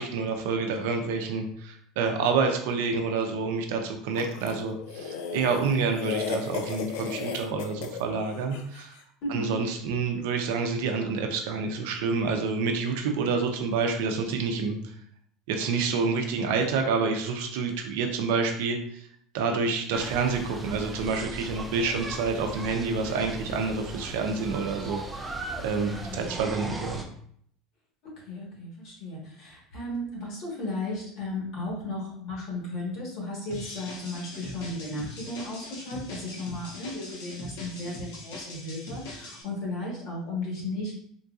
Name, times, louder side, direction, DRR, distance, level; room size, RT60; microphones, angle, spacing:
voice 1, 0.0-8.9 9.3-14.8 15.5-19.1 19.3-25.3 25.6-27.1, right 4 dB, 75° right, 4 dB, 0.5 m, -28 dB
sound 1, 4.1-8.8, left 6 dB, 70° left, 0.4 m, -35 dB
voice 2, 9.2-9.6 25.8-26.3 26.6-26.8 28.3-40.9, left 2 dB, 45° left, -3 dB, 1.3 m, -35 dB
sound 2, 19.9-27.0, right 1 dB, 5° right, 0.3 m, -38 dB
sound 3, 33.5-39.4, left 2 dB, 85° left, 0.9 m, -41 dB
3.7 x 2.6 x 2.4 m, 0.64 s
cardioid pair, 175°, 0 cm